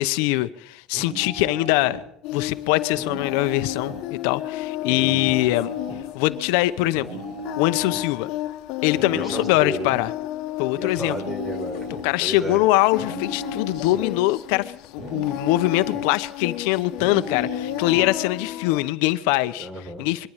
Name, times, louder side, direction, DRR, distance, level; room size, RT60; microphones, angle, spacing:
voice 1, 0.0-2.0 2.3-5.7 6.1-7.2 7.6-8.3 8.8-10.1 10.6-11.2 12.0-19.7 20.0-20.3, left 18 dB, 90° left, 1.0 m, -23 dB
sound 1, 0.9-2.1 2.9-4.1 4.9-6.1 6.9-8.0 9.0-10.1 11.0-12.1 13.0-14.1 15.0-16.1 17.0-18.1, left 1 dB, 40° right, 6.1 m, -35 dB
Singing, 2.2-18.9, left 15 dB, 65° left, 1.4 m, -33 dB
voice 2, 4.9-5.4 9.0-9.9 10.7-11.9 12.2-12.6 19.6-20.0, right 1 dB, 20° right, 5.1 m, -33 dB
23.0 x 13.0 x 9.0 m
cardioid pair, 155°, 0 cm